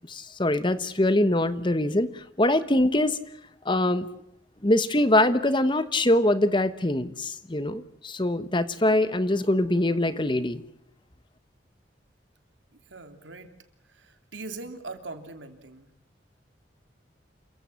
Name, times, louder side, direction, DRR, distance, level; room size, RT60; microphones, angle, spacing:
voice 1, 0.1-3.2 3.6-4.1 4.6-10.6, left 1 dB, 25° left, 13 dB, 1.1 m, -23 dB
voice 2, 12.9-13.5 13.9-15.9, right 3 dB, 90° right, 7 dB, 3.1 m, -41 dB
28.0 x 15.5 x 7.1 m, 0.86 s
head